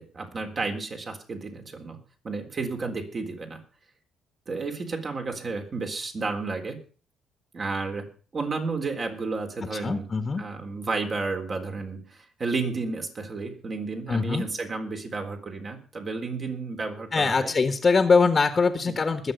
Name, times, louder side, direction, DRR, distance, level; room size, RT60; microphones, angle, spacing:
voice 1, 0.0-2.0 2.2-3.6 4.5-6.8 7.5-8.1 8.3-10.1 10.4-17.5 18.9-19.0, right 3 dB, 45° right, 3 dB, 3.8 m, -32 dB
voice 2, 9.8-10.4 14.1-14.4 17.1-19.3, left 4 dB, 40° left, 8 dB, 1.5 m, -22 dB
20.5 x 7.4 x 5.4 m, 0.39 s
hypercardioid pair, 50°, 0 cm